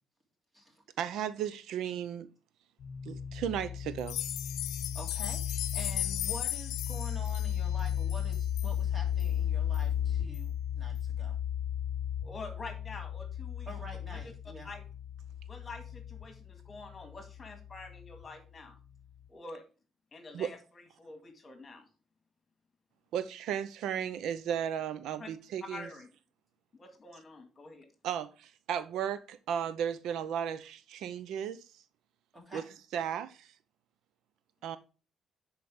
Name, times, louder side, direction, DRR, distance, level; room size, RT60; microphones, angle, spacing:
voice 1, 1.0-2.3 3.1-4.2 20.3-20.5 23.1-25.9 28.0-31.6 32.5-32.6 32.9-33.5 34.6-34.8, right 9 dB, 80° right, 0.5 m, -35 dB
sound 1, 2.8-18.2, left 9 dB, 55° left, 0.8 m, -35 dB
sound 2, 4.0-8.7 9.2-9.3 9.7-9.8 10.3-10.4, left 14 dB, 90° left, 0.5 m, -37 dB
voice 2, 4.9-11.4 13.7-14.7 32.3-32.6, equal, 20° right, 3.0 m, -47 dB
voice 3, 12.2-14.2 14.6-14.9 15.5-18.8 19.3-19.6 20.1-21.9 25.2-25.3 25.7-26.1 26.7-27.9, left 3 dB, 30° left, 2.0 m, -47 dB
10.5 x 4.5 x 3.5 m
cardioid pair, 110°, 0 cm